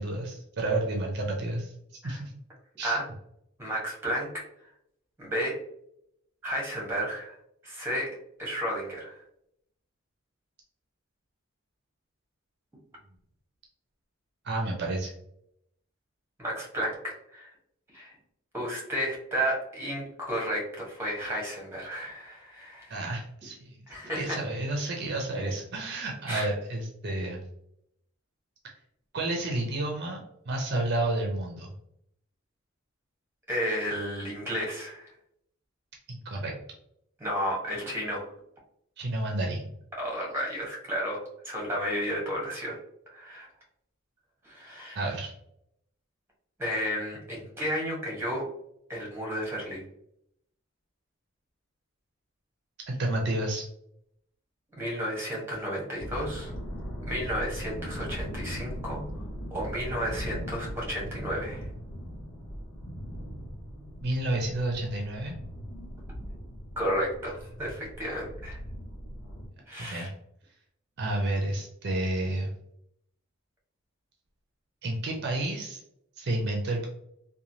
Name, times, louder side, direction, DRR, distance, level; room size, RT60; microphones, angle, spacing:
voice 1, 0.0-1.7 2.0-2.3 2.8-3.0 14.4-15.1 22.9-23.8 24.2-27.4 29.1-30.2 30.5-31.7 36.1-36.5 39.0-39.7 44.9-45.3 52.9-53.6 64.0-65.4 69.9-70.1 71.0-72.5 74.8-75.8 76.2-76.9, right 2 dB, 55° right, 0 dB, 0.5 m, -30 dB
voice 2, 3.6-4.3 5.2-5.5 6.4-7.4 7.6-8.1 8.4-9.2 16.4-16.9 17.3-17.5 17.9-18.1 18.5-23.0 23.9-24.4 26.3-26.4 33.5-35.1 37.2-38.3 40.0-42.8 43.1-43.5 44.4-45.0 46.6-48.5 48.9-49.8 54.8-56.5 57.0-59.1 59.5-61.7 66.8-68.6 69.7-70.1, equal, 10° right, -2 dB, 0.9 m, -32 dB
sound 1, 56.0-69.5, equal, 90° left, 0.6 m, -39 dB
3.0 x 2.2 x 2.6 m, 0.75 s
head